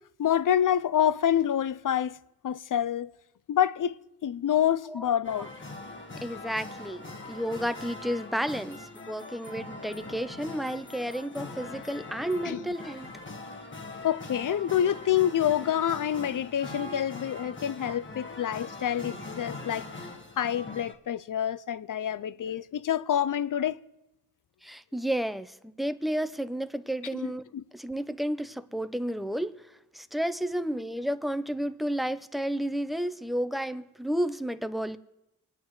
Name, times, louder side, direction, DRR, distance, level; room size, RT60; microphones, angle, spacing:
voice 1, 0.2-2.2 2.4-3.1 3.5-3.9 4.2-5.5 12.4-12.6 14.0-19.9 20.4-23.8 27.2-27.6, left 10 dB, 55° left, 0.6 m, -27 dB
sound 1, 5.2-20.9, left 2 dB, 30° left, 1.5 m, -42 dB
voice 2, 6.2-13.1 24.6-35.0, equal, ahead, 0.6 m, -32 dB
25.5 x 9.5 x 3.2 m
cardioid pair, 60°, 38 cm